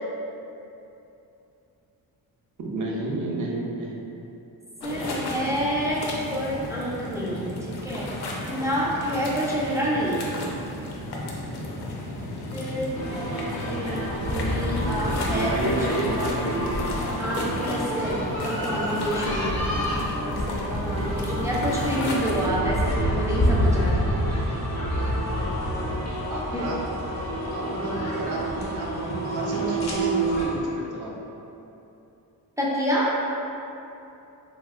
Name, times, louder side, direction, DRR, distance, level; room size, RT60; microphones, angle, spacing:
voice 1, 2.6-4.1 15.2-16.9 26.3-26.8 27.4-31.1, right 2 dB, 55° right, -3 dB, 0.6 m, -31 dB
sound 1, 4.8-22.5, left 1 dB, 85° left, 0.5 m, -34 dB
voice 2, 4.8-8.1 8.5-10.4 12.5-16.5 17.2-24.1 26.5-26.7 32.6-33.1, equal, 10° right, -6 dB, 0.4 m, -28 dB
sound 2, 12.9-30.5, equal, 45° left, 0.6 m, -28 dB
2.7 x 2.1 x 3.4 m, 2.8 s
cardioid pair, 115°, 37 cm